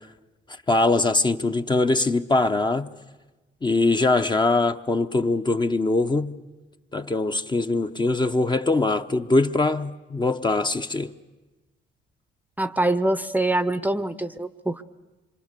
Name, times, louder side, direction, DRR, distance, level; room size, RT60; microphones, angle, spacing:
voice 1, 0.7-2.9 3.6-6.3 6.9-11.1, left 2 dB, 20° left, 0.8 m, -22 dB
voice 2, 12.6-14.8, right 1 dB, 10° right, 0.7 m, -24 dB
26.5 x 25.0 x 6.7 m
cardioid pair, 90°, 20 cm